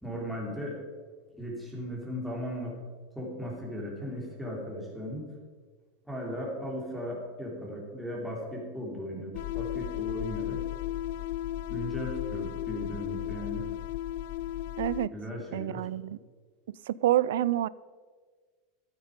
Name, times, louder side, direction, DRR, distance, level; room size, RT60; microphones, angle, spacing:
voice 1, 0.0-0.8 1.4-2.8 3.1-5.2 6.0-10.6 11.7-13.7 15.1-15.9, equal, ahead, -3 dB, 3.2 m, -37 dB
sound 1, 9.3-15.1, left 13 dB, 70° left, 0.3 m, -34 dB
voice 2, 14.8-15.1 15.5-16.2 16.9-17.7, right 13 dB, 85° right, 20 dB, 0.4 m, -27 dB
13.0 x 8.8 x 5.2 m, 1.5 s
supercardioid pair, 140°, 0 cm